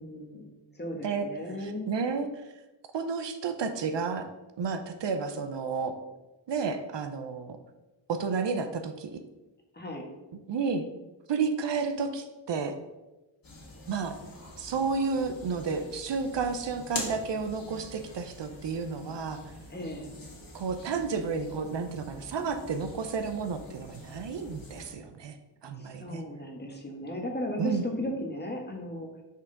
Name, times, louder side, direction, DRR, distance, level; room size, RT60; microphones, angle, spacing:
voice 1, 0.0-1.9 9.7-10.1 19.7-20.1 25.8-29.1, left 1 dB, 20° left, 2 dB, 1.2 m, -36 dB
voice 2, 1.6-2.3 2.9-4.3 4.6-6.0 6.5-7.6 8.1-9.2 10.5-10.8 11.3-12.7 13.9-14.2 14.6-19.4 20.5-25.4 25.6-26.2 27.6-27.8, right 5 dB, 65° right, 8 dB, 0.7 m, -31 dB
sound 1, 13.4-24.9, left 2 dB, 45° left, 2.0 m, -45 dB
6.0 x 5.5 x 3.8 m, 1.0 s
wide cardioid pair, 110°, 47 cm